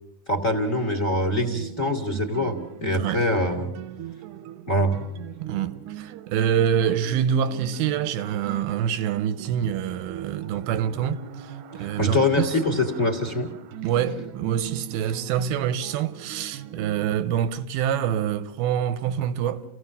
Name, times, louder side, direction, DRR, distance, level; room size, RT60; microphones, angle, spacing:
voice 1, 0.3-3.7 4.7-5.0 11.8-13.5, left 1 dB, 30° left, 1.5 m, -24 dB
sound 1, 1.3-17.1, right 11 dB, 70° right, 2.0 m, -40 dB
voice 2, 5.4-12.5 13.8-19.6, right 9 dB, 85° right, 2.9 m, -26 dB
30.0 x 16.5 x 6.8 m
omnidirectional pair, 4.3 m